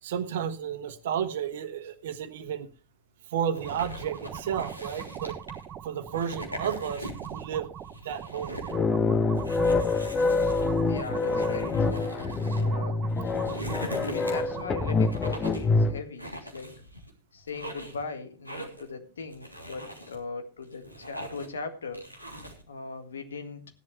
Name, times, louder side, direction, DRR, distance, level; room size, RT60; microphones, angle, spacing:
voice 1, 0.0-2.7 3.3-5.4 5.8-7.7 8.0-8.6, right 8 dB, 55° right, 9 dB, 1.3 m, -32 dB
sound 1, 3.5-5.6 6.1-7.4 7.8-8.8 9.4-12.6 13.1-14.6 15.1-15.7 16.2-17.1 17.5-18.0 18.5-18.9 19.3-20.2 20.6-21.6 21.9-22.6, right 1 dB, 90° left, 3.1 m, -41 dB
sound 2, 3.6-15.1, right 9 dB, 30° right, 0.8 m, -41 dB
sound 3, 8.7-16.0, left 3 dB, 20° left, 0.8 m, -26 dB
voice 2, 10.9-13.0 14.0-16.8 17.3-22.1 22.7-23.6, left 4 dB, 70° left, 7 dB, 1.9 m, -39 dB
16.0 x 11.0 x 3.3 m, 0.33 s
figure-of-eight pair, 90°, 0 cm